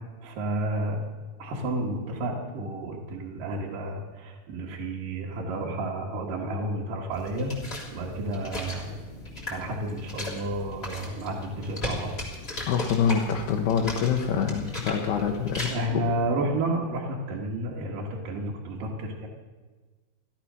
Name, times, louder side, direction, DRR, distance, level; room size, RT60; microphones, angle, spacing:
voice 1, 0.2-1.0 1.4-9.0 9.5-12.1 15.7-19.3, right 1 dB, 60° right, -3 dB, 2.9 m, -31 dB
sound 1, 7.1-15.7, left 2 dB, 15° left, 3.3 m, -37 dB
voice 2, 12.7-16.1, left 7 dB, 80° left, 1 dB, 3.0 m, -26 dB
16.0 x 12.5 x 6.2 m, 1.3 s
omnidirectional pair, 4.7 m